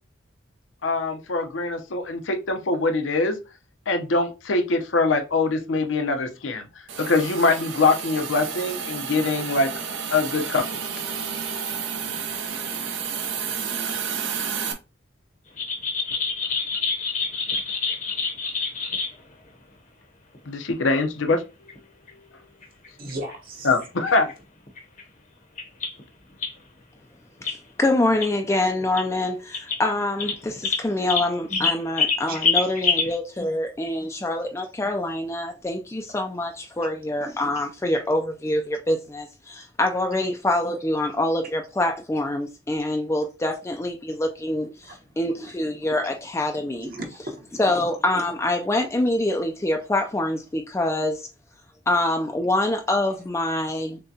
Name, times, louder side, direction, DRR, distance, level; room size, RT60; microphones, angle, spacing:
voice 1, 0.8-3.4 3.9-6.6 7.0-9.7 10.1-10.8 20.5-21.7 23.6-24.3, left 3 dB, 80° left, 0.7 m, -23 dB
Hiss, 6.9-14.7, right 6 dB, 75° right, 0.8 m, -31 dB
sound 1, 15.6-19.1 20.3-20.4 20.9-21.0 21.3-21.4 21.7-21.8 22.1-22.2 22.6-23.3 23.8-24.3 24.7-25.0 25.6-26.0 26.4-26.5 27.4-27.6 28.2-28.3 28.8-29.1 29.5-29.8 30.2-33.1, left 5 dB, 40° left, 0.8 m, -26 dB
voice 2, 23.0-23.7 32.3-32.7 40.1-40.3 44.8-45.1 46.8-47.6, right 1 dB, 45° right, 1.0 m, -36 dB
voice 3, 27.4-46.9 47.6-51.3 51.9-54.0, left 1 dB, 15° left, 0.3 m, -25 dB
6.4 x 2.2 x 2.7 m
head